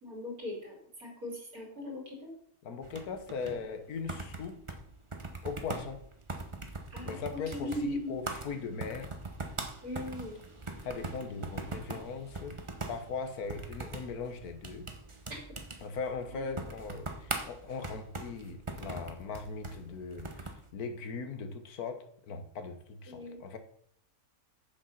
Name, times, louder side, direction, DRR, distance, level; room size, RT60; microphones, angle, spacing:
voice 1, 0.0-2.3 6.9-8.2 9.8-10.4 16.3-16.4 23.1-23.4, left 1 dB, 70° right, -1 dB, 3.7 m, -39 dB
voice 2, 2.6-4.6 5.4-6.0 7.0-9.1 10.8-12.6 12.9-14.9 15.8-23.6, left 5 dB, 75° left, 8 dB, 1.6 m, -39 dB
sound 1, 2.8-20.7, right 3 dB, 25° right, 0.9 m, -42 dB
7.6 x 7.1 x 5.7 m, 0.65 s
omnidirectional pair, 1.6 m